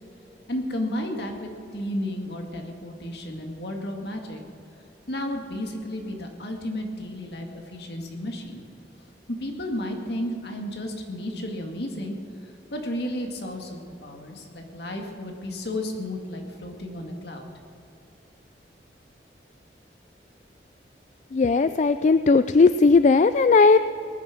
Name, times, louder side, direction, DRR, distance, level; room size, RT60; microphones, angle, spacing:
voice 1, 0.5-4.4 5.1-8.6 9.3-12.1 12.4-17.5, left 1 dB, 65° left, 2 dB, 2.2 m, -33 dB
voice 2, 21.3-23.8, left 4 dB, 40° left, 12 dB, 0.3 m, -17 dB
19.0 x 10.5 x 6.1 m, 2.7 s
head